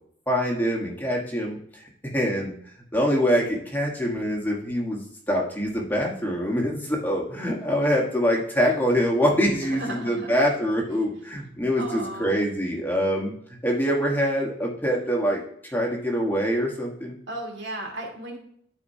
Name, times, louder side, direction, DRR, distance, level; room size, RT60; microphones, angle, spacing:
voice 1, 0.3-1.8 2.1-2.5 2.9-13.3 13.6-15.4 15.7-17.2, equal, 10° left, -2 dB, 1.3 m, -24 dB
voice 2, 9.6-10.4 11.8-12.3 17.3-18.4, right 1 dB, 70° right, 0 dB, 2.1 m, -35 dB
13.0 x 4.3 x 2.7 m, 0.66 s
head